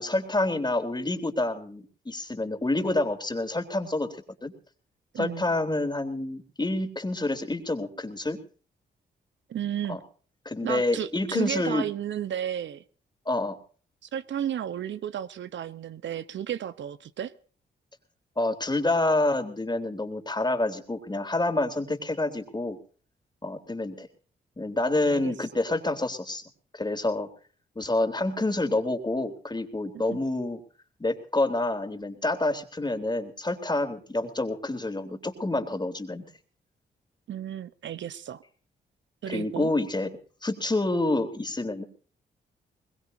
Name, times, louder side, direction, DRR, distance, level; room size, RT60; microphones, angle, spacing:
voice 1, 0.0-4.5 5.2-8.4 9.9-10.0 10.4-11.8 13.2-13.6 18.4-22.8 23.4-24.1 24.6-26.4 26.7-27.3 27.7-30.6 31.0-36.2 39.3-40.1 40.4-41.8, left 2 dB, 20° left, 3.5 m, -28 dB
voice 2, 5.1-5.4 9.5-10.0 10.6-12.8 14.0-17.3 25.0-25.5 30.1-30.2 37.3-38.4 39.2-39.7, right 10 dB, 70° right, 1.0 m, -33 dB
22.0 x 21.0 x 2.8 m
supercardioid pair, 50°, 20 cm